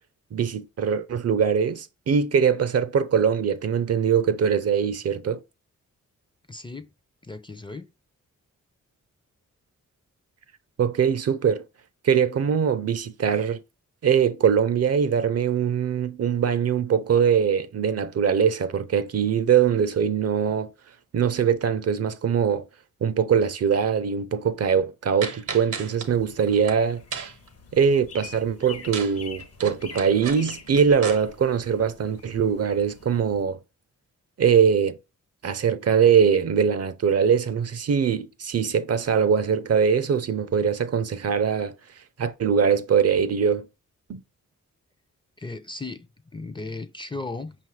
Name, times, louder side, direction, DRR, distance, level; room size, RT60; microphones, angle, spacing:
voice 1, 0.3-5.4 10.8-11.6 12.0-13.6 14.0-20.7 21.1-22.7 23.0-27.0 27.7-33.6 34.4-35.0 35.4-41.7 42.2-43.6 44.1-44.2, right 7 dB, 50° right, 0.5 m, -22 dB
voice 2, 6.5-6.9 7.2-7.9 45.4-46.1 46.3-47.5, left 3 dB, 15° left, 0.4 m, -36 dB
sound 1, 25.2-26.1 26.5-26.7 27.1-27.5 28.9-29.1 29.4-31.2, right 6 dB, 75° right, 0.8 m, -33 dB
sound 2, 26.0-33.4, left 5 dB, 50° left, 0.7 m, -46 dB
5.2 x 2.5 x 3.1 m
cardioid pair, 50°, 32 cm